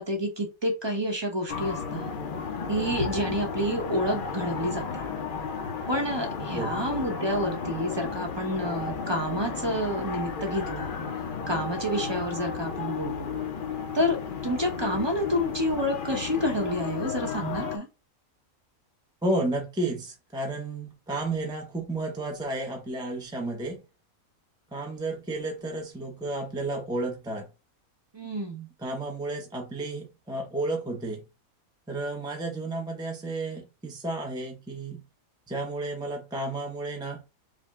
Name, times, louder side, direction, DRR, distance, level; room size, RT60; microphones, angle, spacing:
voice 1, 0.0-2.1 2.7-5.0 5.9-11.0 11.5-13.4 13.9-14.2 14.4-17.9 28.1-28.7, equal, 25° right, 0.7 m, -29 dB
sound 1, 1.5-17.8, left 5 dB, 60° left, 0.5 m, -33 dB
voice 2, 19.2-23.8 24.7-27.5 28.8-31.2 31.9-35.0 35.5-37.2, right 2 dB, 5° right, 0.3 m, -32 dB
4.8 x 2.0 x 3.6 m
omnidirectional pair, 1.5 m